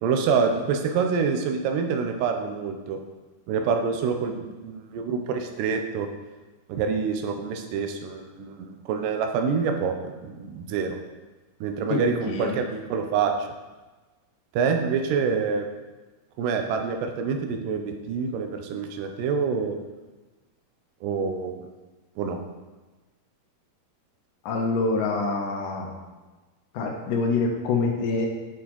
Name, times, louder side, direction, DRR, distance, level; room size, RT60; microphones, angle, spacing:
voice 1, 0.0-3.0 3.5-6.1 6.7-11.0 11.6-13.3 14.5-15.7 16.4-19.8 21.0-21.6 22.2-22.4, right 5 dB, 80° right, 5 dB, 2.2 m, -26 dB
voice 2, 24.5-25.9 26.7-28.3, left 3 dB, 80° left, 1 dB, 2.3 m, -25 dB
8.0 x 4.8 x 2.9 m, 1.2 s
omnidirectional pair, 3.9 m